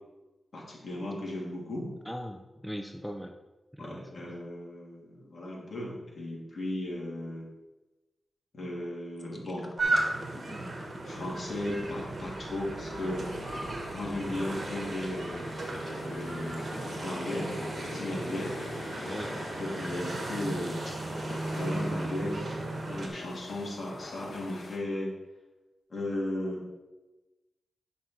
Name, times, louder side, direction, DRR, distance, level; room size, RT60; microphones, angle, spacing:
voice 1, 0.5-1.9 3.8-7.5 8.5-9.7 11.0-13.3 13.9-15.6 16.0-16.7 17.0-18.5 19.6-20.9 21.5-22.6 22.8-25.1 25.9-26.6, left 1 dB, 55° left, -4 dB, 3.2 m, -36 dB
voice 2, 2.0-3.4 3.7-4.4 19.1-19.3, equal, ahead, 4 dB, 0.6 m, -40 dB
sound 1, 9.2-19.0 19.5-19.7, left 1 dB, 20° left, 1.3 m, -50 dB
sound 2, 9.8-23.1, right 2 dB, 55° right, 1.7 m, -35 dB
sound 3, 12.9-24.8, left 2 dB, 90° left, 1.4 m, -44 dB
9.5 x 5.8 x 4.7 m, 1.1 s
wide cardioid pair, 95°, 0 cm